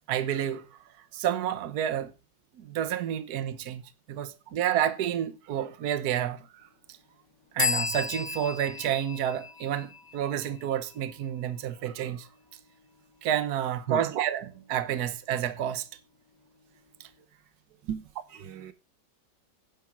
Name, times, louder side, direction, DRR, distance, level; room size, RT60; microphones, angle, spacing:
voice 1, 0.1-0.7 1.1-2.1 2.6-3.8 4.1-6.5 7.5-12.3 13.2-15.9 17.0-17.1, right 10 dB, 65° right, 1.4 m, -29 dB
sound 1, 7.6-11.1, left 6 dB, 80° left, 2.2 m, -34 dB
voice 2, 17.8-18.7, right 9 dB, 90° right, 1.8 m, -36 dB
10.5 x 7.5 x 6.1 m
omnidirectional pair, 1.9 m